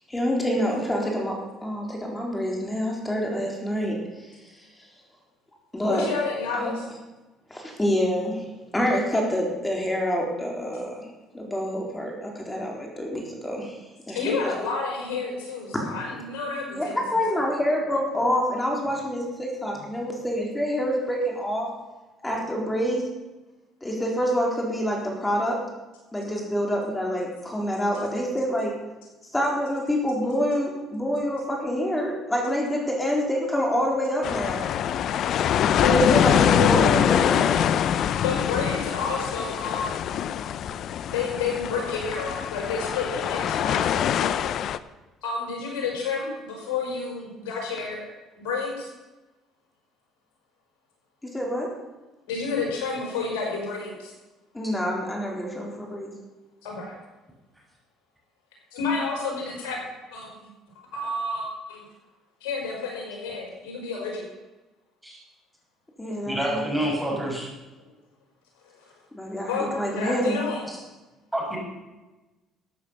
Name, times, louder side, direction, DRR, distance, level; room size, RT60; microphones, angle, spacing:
voice 1, 0.1-1.4 1.6-4.0 5.7-6.0 6.5-6.7 7.5-8.5 8.7-11.0 11.3-13.8 14.1-14.5 15.7-15.8 16.7-21.7 22.2-23.0 23.8-25.6 26.1-28.8 29.3-34.6 35.9-37.6 51.2-51.7 54.5-56.1 66.0-66.7 67.1-67.3 69.1-70.4, equal, 15° left, -1 dB, 4.0 m, -27 dB
voice 2, 5.8-6.8 14.1-17.0 17.3-17.4 35.8-36.4 38.2-39.9 41.1-44.5 45.2-48.1 48.4-48.9 52.3-54.1 56.6-57.0 58.7-59.8 60.1-60.3 60.9-61.8 62.4-64.3 69.5-70.6, left 4 dB, 85° left, -1 dB, 5.3 m, -30 dB
sound 1, 34.2-44.8, left 9 dB, 60° left, 0.6 m, -24 dB
voice 3, 66.2-67.5 70.7-70.8 71.3-71.6, right 1 dB, 10° right, -4 dB, 5.9 m, -27 dB
14.0 x 8.3 x 7.0 m, 1.1 s
supercardioid pair, 75°, 0 cm